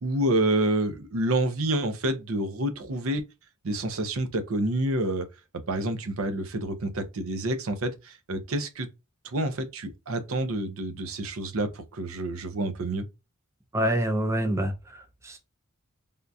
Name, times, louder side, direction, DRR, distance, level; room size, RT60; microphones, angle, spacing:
voice 1, 0.0-3.2 3.6-5.3 5.7-8.9 9.2-13.1, right 1 dB, 65° right, 0.6 m, -28 dB
voice 2, 13.7-15.4, right 1 dB, 15° right, 0.4 m, -27 dB
3.5 x 2.3 x 2.6 m
head